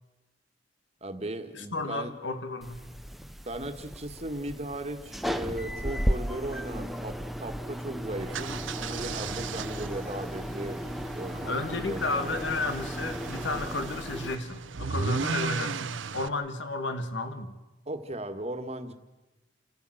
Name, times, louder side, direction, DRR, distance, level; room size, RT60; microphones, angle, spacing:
voice 1, 1.0-2.1 3.4-10.8 11.1-12.4 17.9-18.9, right 1 dB, 35° right, 7 dB, 1.7 m, -37 dB
voice 2, 1.5-2.9 11.5-17.6, left 2 dB, 70° left, 9 dB, 1.8 m, -33 dB
sound 1, 2.6-14.4, equal, ahead, 0.7 m, -35 dB
sound 2, 8.2-16.3, right 5 dB, 80° right, 0.8 m, -36 dB
28.5 x 14.0 x 7.8 m, 1.1 s
head